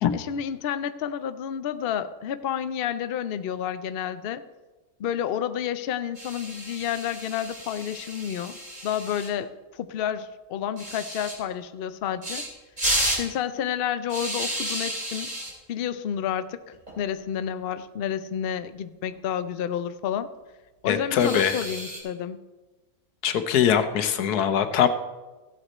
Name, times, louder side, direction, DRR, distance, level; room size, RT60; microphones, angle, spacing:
voice 1, 0.1-4.4 5.0-12.4 13.1-15.3 15.7-20.3 20.8-22.4, left 9 dB, 65° left, 11 dB, 0.6 m, -30 dB
sound 1, 6.2-9.3 10.8-11.4 12.2-12.5 12.8-13.3 14.1-15.5 16.7-16.9 17.2-17.3 17.7-17.8 19.0-19.5 21.1-22.0, equal, 30° right, 2.9 m, -32 dB
voice 2, 20.9-21.6 23.2-24.9, left 8 dB, 85° left, 10 dB, 1.3 m, -22 dB
15.0 x 7.9 x 4.3 m, 1.2 s
omnidirectional pair, 1.6 m